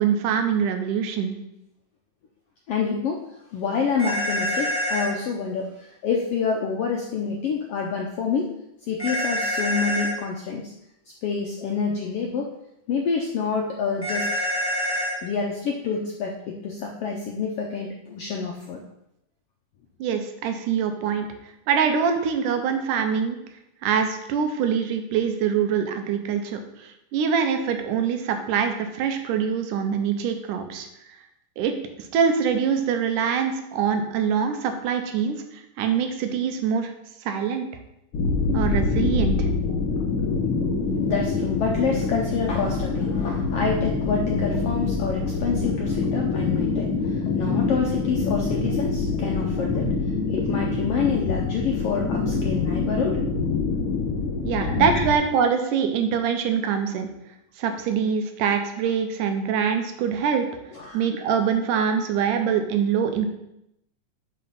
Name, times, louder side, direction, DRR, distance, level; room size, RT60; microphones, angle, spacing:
voice 1, 0.0-1.3 20.0-21.3 21.7-23.4 23.8-30.9 31.6-31.7 32.1-36.9 37.2-37.7 38.5-39.5 54.4-57.1 57.6-60.5 60.9-63.3, right 7 dB, 90° right, 6 dB, 2.4 m, -24 dB
voice 2, 2.7-3.2 3.5-8.5 8.8-10.7 11.2-12.5 12.9-14.3 15.2-18.8 20.1-20.2 41.0-49.9 50.3-53.2 54.5-55.0 60.7-61.1, left 5 dB, 80° left, 0 dB, 1.3 m, -27 dB
sound 1, 4.0-5.1 9.0-10.1 14.0-15.2, equal, 5° left, 0.8 m, -26 dB
sound 2, 38.1-55.1, left 4 dB, 60° left, 1.5 m, -25 dB
6.3 x 5.8 x 5.5 m, 0.83 s
omnidirectional pair, 3.6 m